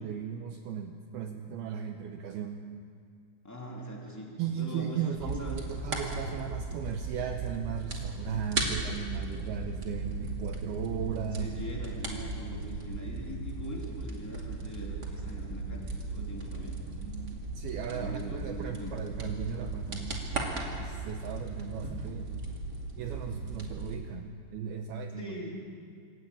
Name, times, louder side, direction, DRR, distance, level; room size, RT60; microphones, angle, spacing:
voice 1, 0.0-2.9 4.4-11.5 12.5-12.6 16.2-16.4 17.0-20.2 20.8-22.5 23.0-25.3, right 7 dB, 85° right, 5 dB, 2.2 m, -37 dB
voice 2, 3.4-5.6 11.4-16.8 17.8-18.9 25.2-25.5, equal, 5° left, -2 dB, 2.0 m, -42 dB
sound 1, 5.1-24.0, right 3 dB, 35° right, 1.6 m, -37 dB
Growling, 7.8-12.8, right 1 dB, 45° left, 4.1 m, -52 dB
27.0 x 14.5 x 8.7 m, 2.2 s
omnidirectional pair, 5.6 m